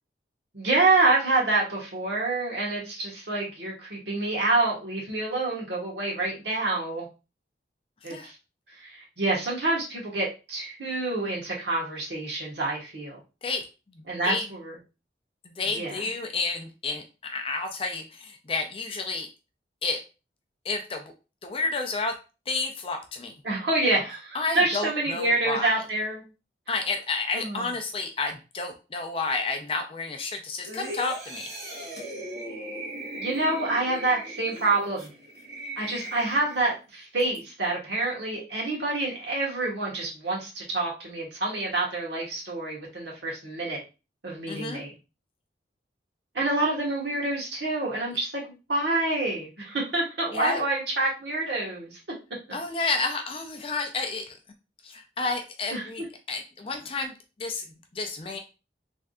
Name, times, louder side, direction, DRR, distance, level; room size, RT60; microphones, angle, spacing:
voice 1, 0.5-7.1 8.0-8.3 8.8-13.2 14.1-14.7 15.7-16.0 23.4-26.2 27.3-27.7 33.2-35.1 35.8-43.8 44.2-44.9 46.3-48.4 48.7-52.0 55.7-55.9, right 2 dB, 80° right, -3 dB, 1.2 m, -27 dB
voice 2, 13.9-14.5 15.4-19.3 19.8-20.0 20.6-21.0 21.4-22.2 22.5-23.3 24.3-25.8 26.7-31.5 44.5-44.8 50.3-50.6 52.5-54.4 54.8-57.7 57.9-58.4, left 3 dB, 30° left, 4 dB, 0.5 m, -31 dB
sound 1, 30.6-36.8 37.2-37.4, right 1 dB, 65° right, 1.3 m, -38 dB
3.4 x 2.6 x 2.3 m, 0.30 s
head